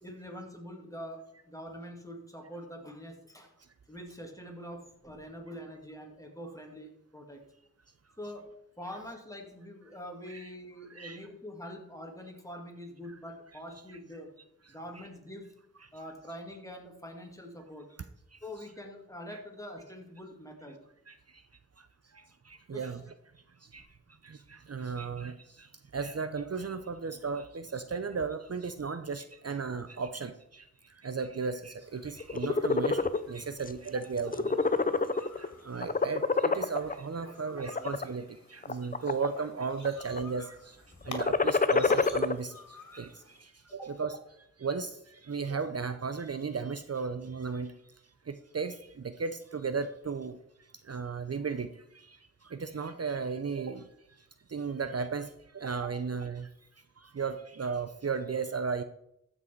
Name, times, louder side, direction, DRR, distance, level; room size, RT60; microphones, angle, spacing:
voice 1, 0.0-3.5 3.9-7.4 8.2-14.3 14.7-15.5 15.9-17.9 18.4-20.8 22.7-23.0 37.2-37.9 39.8-39.9 43.7-43.9 55.8-55.9, equal, 10° left, 2 dB, 2.4 m, -45 dB
voice 2, 10.9-11.2 15.0-15.1 21.1-21.2 22.1-23.0 23.7-23.8 24.2-30.6 31.0-34.6 35.2-40.8 41.0-43.1 43.4-44.2 44.6-45.0 45.2-47.7 48.3-50.4 50.9-51.7 51.9-52.2 52.4-53.8 54.5-56.5 57.0-58.8, right 5 dB, 50° right, 10 dB, 0.6 m, -35 dB
sound 1, 31.8-43.4, left 2 dB, 60° left, 2.3 m, -51 dB
sound 2, 32.2-33.2 33.7-33.9 34.2-35.5 35.8-36.9 37.6-38.0 38.6-39.4 39.7-40.2 41.0-42.3, left 4 dB, 25° left, 0.5 m, -27 dB
14.0 x 6.2 x 4.5 m, 0.79 s
wide cardioid pair, 55°, 32 cm